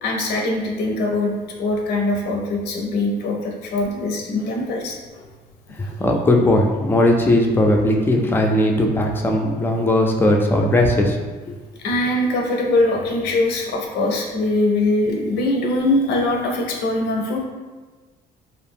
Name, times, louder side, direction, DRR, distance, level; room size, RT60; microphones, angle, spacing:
voice 1, 0.0-5.2 11.8-17.4, left 2 dB, 85° left, 0 dB, 0.5 m, -22 dB
voice 2, 5.8-11.2 11.5-11.6, left 1 dB, 15° left, 1 dB, 0.3 m, -18 dB
2.4 x 2.1 x 3.4 m, 1.3 s
cardioid pair, 110°, 17 cm